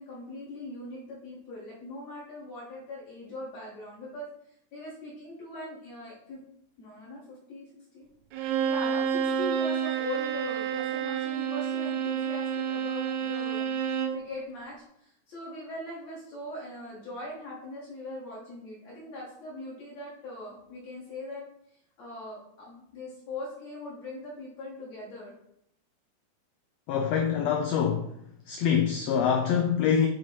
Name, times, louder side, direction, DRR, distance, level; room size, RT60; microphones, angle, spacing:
voice 1, 0.0-4.3 4.7-6.4 6.8-7.7 7.9-8.1 8.7-13.7 14.1-21.4 22.0-25.3, left 1 dB, 65° left, 2.5 m, -41 dB
Bowed string instrument, 8.3-14.2, right 8 dB, 75° right, 1.8 m, -29 dB
voice 2, 26.9-28.1 28.5-30.1, left 7 dB, 85° left, 1.4 m, -25 dB
7.2 x 3.0 x 4.6 m
omnidirectional pair, 3.5 m